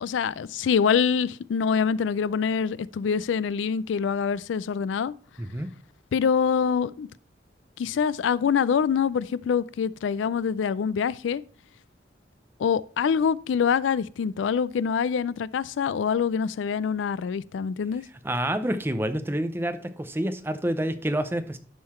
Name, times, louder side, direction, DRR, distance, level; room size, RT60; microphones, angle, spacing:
voice 1, 0.0-5.1 6.1-7.1 7.8-11.4 12.6-18.0, left 6 dB, 90° left, 0.3 m, -25 dB
voice 2, 5.4-5.7 18.2-21.6, right 1 dB, 10° right, 0.6 m, -28 dB
11.0 x 3.8 x 4.3 m
head